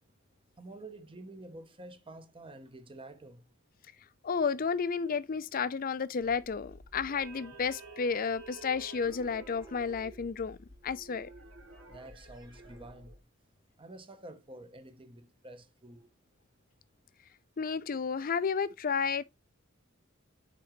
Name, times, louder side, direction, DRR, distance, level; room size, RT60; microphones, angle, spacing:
voice 1, 0.6-3.4 11.9-13.1 13.8-16.1, right 2 dB, 25° right, 0.8 m, -49 dB
voice 2, 4.2-10.6 10.8-11.3 17.6-19.2, left 5 dB, 45° left, 0.5 m, -32 dB
sound 1, 6.2-13.2, right 2 dB, 65° right, 4.0 m, -50 dB
9.3 x 3.8 x 3.1 m
head